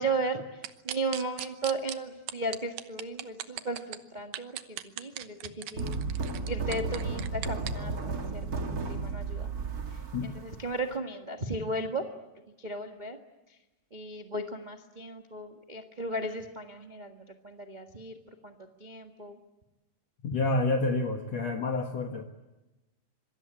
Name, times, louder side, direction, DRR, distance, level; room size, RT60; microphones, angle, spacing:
voice 1, 0.0-6.0 6.5-9.5 10.2-12.0 12.6-13.2 13.9-18.2 18.4-18.5 18.8-19.4, right 2 dB, 55° right, 4 dB, 0.5 m, -35 dB
sound 1, 0.6-2.0 2.3-4.0 4.3-7.7, right 12 dB, 80° right, 2.8 m, -38 dB
sound 2, 5.8-10.9, right 3 dB, 35° right, 1.7 m, -34 dB
voice 2, 10.1-10.4 20.2-22.2, left 2 dB, 55° left, 5 dB, 2.3 m, -29 dB
26.5 x 24.0 x 8.8 m, 1.1 s
omnidirectional pair, 4.1 m